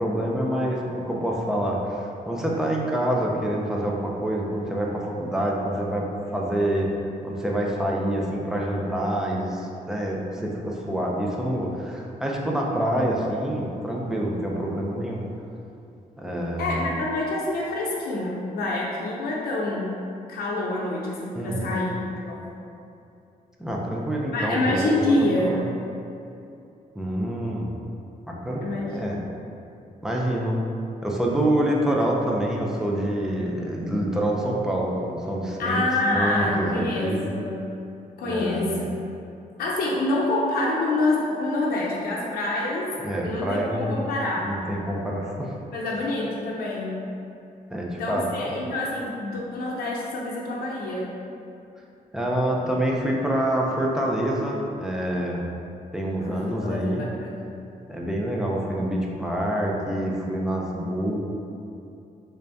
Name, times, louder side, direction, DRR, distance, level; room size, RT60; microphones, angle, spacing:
voice 1, 0.0-6.9 7.2-15.2 16.2-16.8 21.3-21.8 23.6-25.6 26.9-27.7 28.3-29.2 30.0-30.6 31.0-37.3 38.2-38.9 43.0-44.0 44.4-45.5 47.7-48.2 52.1-55.5 55.9-57.0 57.9-61.2, right 1 dB, 5° right, -3 dB, 0.4 m, -26 dB
voice 2, 16.6-19.9 20.3-22.4 24.3-25.6 28.6-29.2 35.6-37.5 38.2-38.8 39.6-42.9 43.2-44.5 45.7-47.0 48.0-51.1 56.2-57.6, left 2 dB, 90° left, -4 dB, 0.5 m, -27 dB
3.3 x 2.7 x 3.4 m, 2.7 s
cardioid pair, 135°, 15 cm